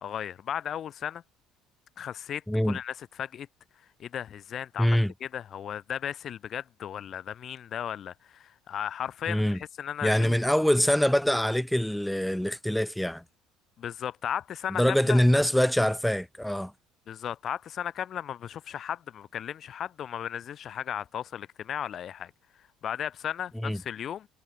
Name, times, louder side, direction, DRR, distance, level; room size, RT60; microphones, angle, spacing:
voice 1, 0.0-1.2 2.0-3.5 4.0-10.3 13.8-15.2 17.1-22.3 22.8-24.3, left 9 dB, 50° left, 1.4 m, -35 dB
voice 2, 2.5-2.8 4.8-5.1 9.3-9.6 10.0-13.2 14.7-16.7 23.6-23.8, equal, 5° left, 0.6 m, -24 dB
hypercardioid pair, 70°, 0 cm